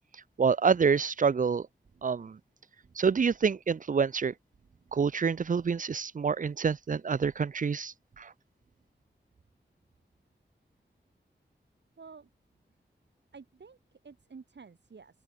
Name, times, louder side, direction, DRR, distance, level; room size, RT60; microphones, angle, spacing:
voice 1, 0.4-1.7 2.0-2.4 3.0-4.3 4.9-8.3, right 6 dB, 45° right, 0.6 m, -27 dB
voice 2, 12.0-12.3 13.3-15.2, right 5 dB, 75° right, 5.3 m, -51 dB
open air
wide cardioid pair, 80°, 18 cm